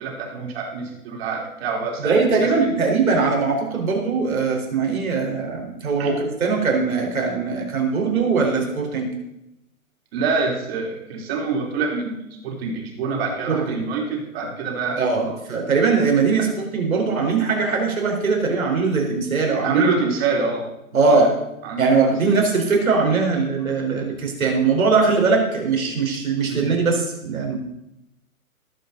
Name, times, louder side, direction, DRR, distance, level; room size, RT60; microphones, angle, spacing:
voice 1, 0.0-2.1 2.4-2.5 6.0-6.2 10.1-15.4 19.6-20.7 21.1-21.2 21.6-22.0 26.5-26.7, right 4 dB, 45° right, 0 dB, 3.7 m, -26 dB
voice 2, 2.0-9.1 13.5-13.8 15.0-19.9 20.9-21.3 21.8-27.6, right 4 dB, 75° right, 0 dB, 4.6 m, -21 dB
19.0 x 8.1 x 4.1 m, 0.87 s
hypercardioid pair, 135°, 42 cm